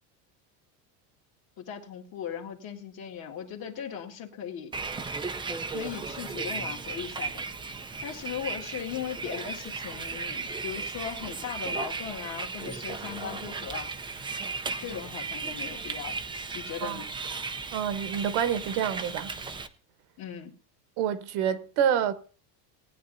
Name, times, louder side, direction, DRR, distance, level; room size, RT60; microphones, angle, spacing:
voice 1, 1.6-4.7 5.7-7.4 8.0-13.9 14.8-16.2 16.5-17.1 20.2-20.5, left 8 dB, 45° left, 2.0 m, -38 dB
Bus, 4.7-19.7, right 4 dB, 10° right, 0.4 m, -36 dB
voice 2, 17.7-19.3 21.0-22.1, right 9 dB, 65° right, 1.2 m, -27 dB
18.5 x 9.7 x 2.7 m
supercardioid pair, 135°, 48 cm